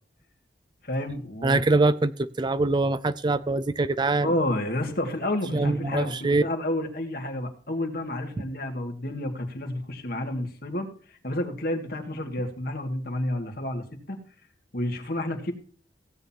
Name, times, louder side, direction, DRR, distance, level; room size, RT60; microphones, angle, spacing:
voice 1, 0.8-1.6 4.2-14.2 14.7-15.5, left 1 dB, 55° left, 4 dB, 2.1 m, -30 dB
voice 2, 1.4-4.3 5.5-6.4, right 2 dB, 25° right, 14 dB, 0.4 m, -23 dB
16.5 x 9.2 x 2.9 m, 0.42 s
head